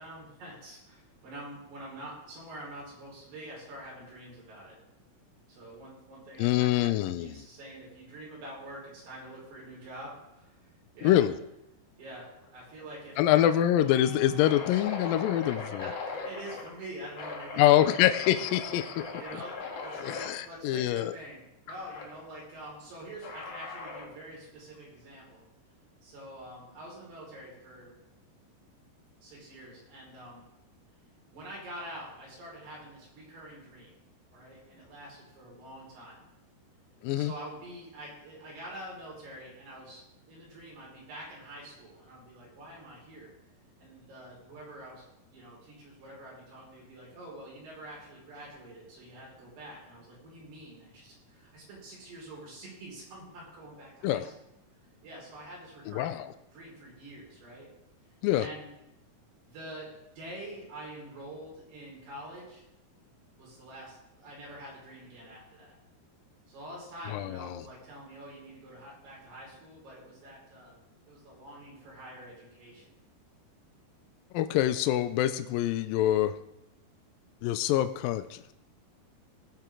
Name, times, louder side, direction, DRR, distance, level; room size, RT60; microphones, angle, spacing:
voice 1, 0.0-4.8 5.5-11.2 12.0-12.3 12.5-13.5 15.8-18.5 19.2-25.4 26.0-28.0 29.2-30.5 31.3-34.0 34.3-36.2 37.1-43.3 43.8-54.3 55.0-57.7 58.4-58.7 59.4-62.6 63.4-65.7 66.5-70.8 71.1-73.0, right 1 dB, 85° right, -4 dB, 7.0 m, -46 dB
voice 2, 6.4-7.3 11.0-11.3 13.2-15.9 17.6-19.0 20.0-21.1 37.0-37.3 54.0-54.2 55.9-56.2 58.2-58.5 67.1-67.6 74.3-76.4 77.4-78.5, left 12 dB, 80° left, 9 dB, 2.1 m, -25 dB
sound 1, 12.2-12.5 12.8-12.9 13.4-16.7 17.1-20.3 21.7-22.1 23.2-24.2, left 4 dB, 55° left, 2.1 m, -40 dB
18.5 x 9.1 x 3.8 m, 0.86 s
omnidirectional pair, 4.5 m